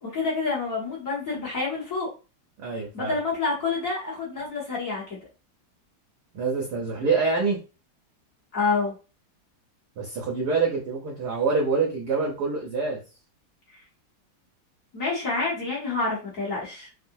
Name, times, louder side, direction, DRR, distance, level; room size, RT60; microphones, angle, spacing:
voice 1, 0.0-2.1 2.9-5.2 8.5-8.9 14.9-16.9, left 4 dB, 45° left, -6 dB, 1.3 m, -28 dB
voice 2, 2.6-3.1 6.3-7.6 10.0-13.0, right 4 dB, 70° right, -1 dB, 0.9 m, -26 dB
3.7 x 2.0 x 2.6 m, 0.32 s
omnidirectional pair, 2.4 m